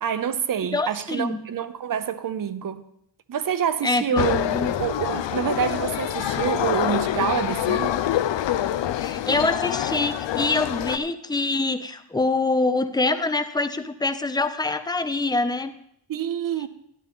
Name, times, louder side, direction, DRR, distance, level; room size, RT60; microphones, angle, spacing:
voice 1, 0.0-2.8 3.3-4.4 4.8-8.0 16.1-16.7, right 9 dB, 50° right, 0.7 m, -27 dB
voice 2, 0.7-1.4 3.8-4.7 9.0-15.7, left 3 dB, 10° left, 0.5 m, -25 dB
sound 1, 4.2-11.0, left 11 dB, 85° left, 0.6 m, -26 dB
12.5 x 11.0 x 3.6 m
wide cardioid pair, 160°, 43 cm